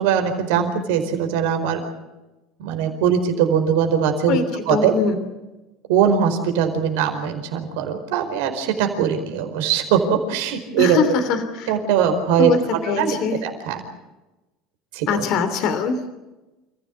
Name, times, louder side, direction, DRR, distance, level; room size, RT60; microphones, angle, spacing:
voice 1, 0.0-1.8 2.6-4.4 4.7-4.9 5.9-11.2 11.7-12.5 13.0-13.8 14.9-15.2, right 8 dB, 75° right, 5 dB, 4.7 m, -21 dB
voice 2, 4.7-5.2 10.8-11.7 12.4-12.6 12.8-13.4 15.1-16.1, left 6 dB, 60° left, 9 dB, 3.0 m, -22 dB
28.5 x 15.5 x 8.4 m, 1.1 s
hypercardioid pair, 80°, 0 cm